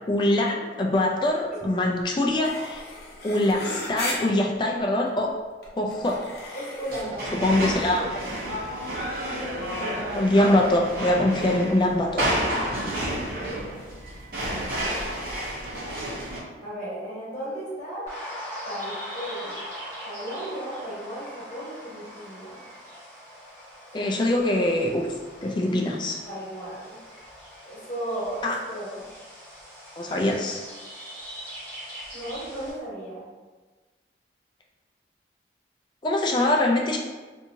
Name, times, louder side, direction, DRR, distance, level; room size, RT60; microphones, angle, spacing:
voice 1, 0.1-2.8 3.2-5.3 5.8-6.2 7.3-8.1 10.1-12.3 23.9-25.0 25.4-26.2 28.4-28.6 30.0-30.6 36.0-37.0, left 1 dB, 25° left, 0 dB, 0.3 m, -23 dB
sound 1, 2.0-2.1 2.3-4.1 5.1-5.2 5.6-7.0, left 2 dB, 60° left, 0.7 m, -35 dB
voice 2, 6.5-7.5 7.8-8.4 12.5-13.8 16.6-18.1 18.6-19.6 20.0-22.7 24.0-24.1 26.3-27.0 27.6-29.0 32.1-33.3, right 1 dB, 40° left, -8 dB, 1.1 m, -36 dB
sound 2, 6.9-16.4, right 1 dB, 55° right, 0.8 m, -30 dB
sound 3, 18.1-32.7, equal, 20° right, 0.9 m, -41 dB
2.7 x 2.6 x 2.6 m, 1.3 s
head